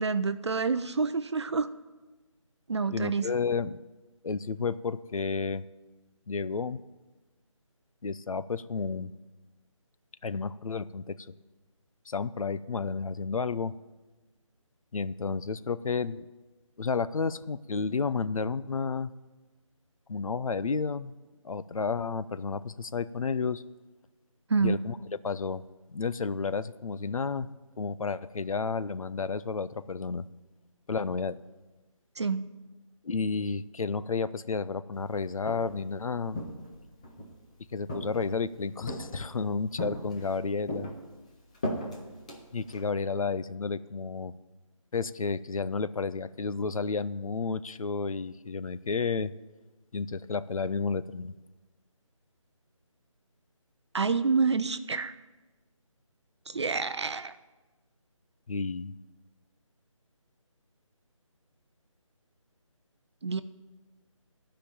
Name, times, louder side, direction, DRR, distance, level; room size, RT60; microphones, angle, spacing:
voice 1, 0.0-1.7 2.7-3.3 24.5-24.8 32.2-32.4 53.9-55.1 56.5-57.4 63.2-63.4, right 4 dB, 55° right, 12 dB, 0.5 m, -28 dB
voice 2, 2.9-3.8 4.2-5.6 6.3-6.8 8.0-9.1 10.2-11.2 12.1-13.7 14.9-16.3 16.8-19.1 20.1-21.1 21.4-23.6 24.6-25.6 25.9-27.5 27.8-30.2 30.9-31.4 33.0-36.4 37.7-40.9 42.5-44.3 44.9-49.3 49.9-51.3 58.5-58.9, left 4 dB, 85° left, 15 dB, 0.6 m, -31 dB
Walk footsteps, 35.2-35.9 36.3-37.3 37.9-38.5 38.9-39.4 39.8-40.4 40.7-42.9, left 1 dB, 10° left, 0.6 m, -37 dB
13.5 x 5.1 x 8.8 m, 1.2 s
figure-of-eight pair, 170°, 17 cm